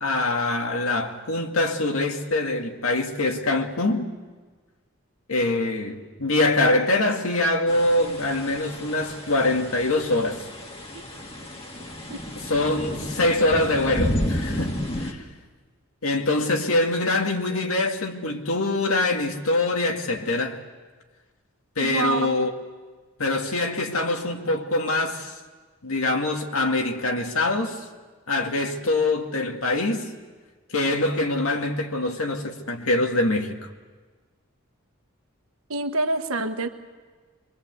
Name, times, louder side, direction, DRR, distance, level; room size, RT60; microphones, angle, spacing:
voice 1, 0.0-4.1 5.3-10.4 12.5-15.2 16.0-20.6 21.8-22.5 23.2-25.3 25.8-27.8 28.3-30.1 30.7-33.6, left 2 dB, 85° left, 2.2 m, -24 dB
sound 1, 7.7-15.1, left 1 dB, 25° left, 1.9 m, -32 dB
voice 2, 21.8-22.4 35.7-36.7, right 2 dB, 80° right, 1.5 m, -26 dB
24.0 x 23.5 x 8.3 m
head